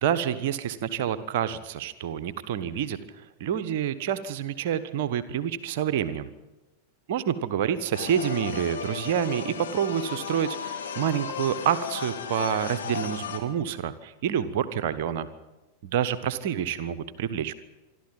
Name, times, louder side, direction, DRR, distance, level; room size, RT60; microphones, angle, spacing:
voice 1, 0.0-6.3 7.1-15.3 15.8-17.5, right 9 dB, 50° right, 12 dB, 1.2 m, -28 dB
sound 1, 7.9-13.4, left 7 dB, 65° left, 2.8 m, -35 dB
26.0 x 12.5 x 9.0 m, 1.1 s
figure-of-eight pair, 90°, 0 cm